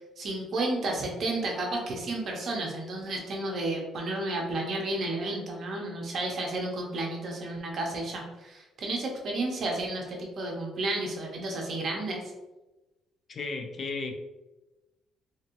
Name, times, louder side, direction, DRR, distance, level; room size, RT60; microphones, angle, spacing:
voice 1, 0.2-12.2, right 2 dB, 45° right, 0 dB, 0.7 m, -32 dB
voice 2, 13.3-14.1, left 3 dB, 35° left, 4 dB, 0.3 m, -34 dB
2.8 x 2.5 x 2.9 m, 1.1 s
cardioid pair, 160°, 0 cm